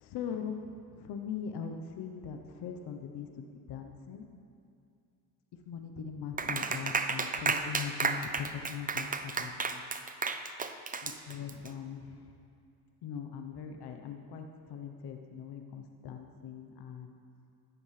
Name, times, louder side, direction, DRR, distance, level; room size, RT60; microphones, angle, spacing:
voice 1, 0.1-0.6 0.9-4.3 5.7-9.9 11.0-12.3 13.0-17.1, left 7 dB, 60° left, 4 dB, 1.0 m, -41 dB
Clapping, 6.4-11.7, right 4 dB, 20° right, 0.6 m, -32 dB
13.5 x 10.0 x 3.3 m, 2.4 s
supercardioid pair, 65°, 44 cm